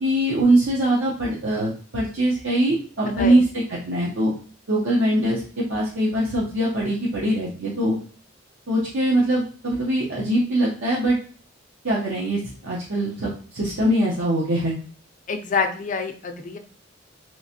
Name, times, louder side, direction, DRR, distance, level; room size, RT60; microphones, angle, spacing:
voice 1, 0.0-4.3 4.7-8.0 8.7-11.2 11.8-14.8, right 1 dB, 80° right, -6 dB, 0.8 m, -22 dB
voice 2, 3.1-3.4 15.3-16.6, left 5 dB, 40° left, 6 dB, 0.4 m, -26 dB
3.2 x 3.1 x 2.7 m, 0.41 s
head